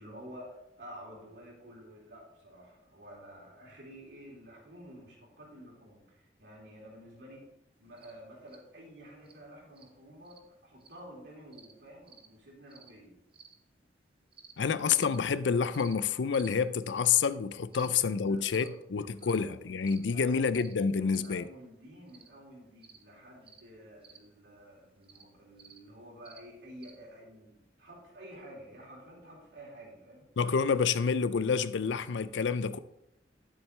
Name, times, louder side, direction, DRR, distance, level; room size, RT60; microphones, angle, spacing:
voice 1, 0.0-7.5 7.8-13.1 17.7-18.7 19.1-19.5 20.1-20.4 21.0-30.3, equal, 80° right, 3.8 m, -51 dB
sound 1, 8.0-8.1 8.5-8.6 9.2-9.4 9.8-9.9 10.2-10.4 10.8-11.0 11.5-11.7 12.1-12.3 12.7-12.9 13.3-13.5 14.3-14.5 14.9-15.2 15.7-15.9 16.3-16.5 17.1-17.3 17.7-17.9 18.5-18.7 19.2-19.4 19.8-20.1 20.5-20.7 21.1-21.3 22.1-22.3 22.8-23.0 23.4-23.6 24.0-24.2 25.0-25.2 25.6-25.8 26.2-26.4 26.8-26.9, right 6 dB, 30° right, 0.8 m, -54 dB
voice 2, 14.6-21.4 30.4-32.8, left 6 dB, 90° left, 0.5 m, -28 dB
10.5 x 7.6 x 3.3 m
head